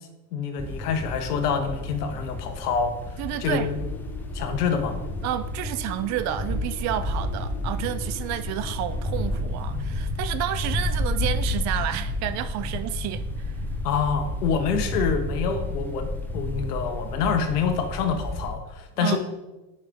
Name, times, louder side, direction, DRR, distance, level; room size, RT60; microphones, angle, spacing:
voice 1, 0.3-3.7 4.3-5.0 13.8-19.2, left 6 dB, 80° left, 1.4 m, -26 dB
sound 1, 0.6-18.5, left 1 dB, 5° left, 0.9 m, -31 dB
voice 2, 3.2-3.7 5.2-13.6 19.0-19.2, right 12 dB, 40° right, 0.4 m, -30 dB
sound 2, 3.3-9.5, left 8 dB, 30° left, 0.8 m, -44 dB
9.6 x 5.5 x 3.7 m
supercardioid pair, 110°, 46 cm